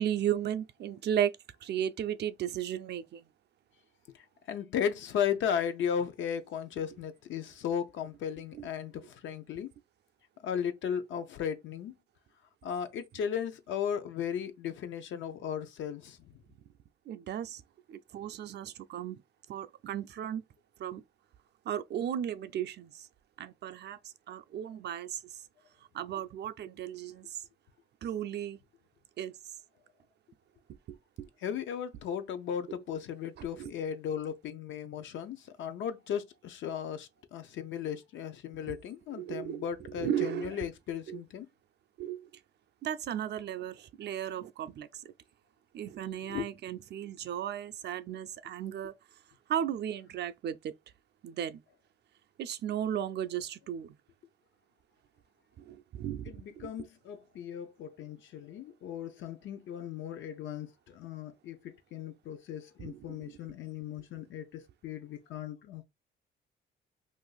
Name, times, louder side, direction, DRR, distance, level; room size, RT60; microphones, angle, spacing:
voice 1, 0.0-1.4 1.6-3.2 8.6-8.7 17.1-17.6 17.9-19.2 19.5-20.4 20.8-21.0 21.7-22.9 23.4-24.0 24.3-25.2 25.9-27.2 28.0-28.6 29.2-29.3 31.2-31.3 33.4-33.7 38.7-38.8 39.2-39.6 40.0-40.6 41.1-41.2 42.0-42.3 42.8-44.9 45.7-48.9 49.5-50.7 51.2-51.6 52.4-53.9 55.7-56.7 62.8-63.2, right 10 dB, 60° right, 0.4 m, -35 dB
voice 2, 4.1-9.7 10.4-11.9 12.6-16.2 31.4-41.5 46.3-46.5 56.3-65.8, left 8 dB, 75° left, 0.6 m, -36 dB
2.5 x 2.4 x 3.8 m
cardioid pair, 90°, 20 cm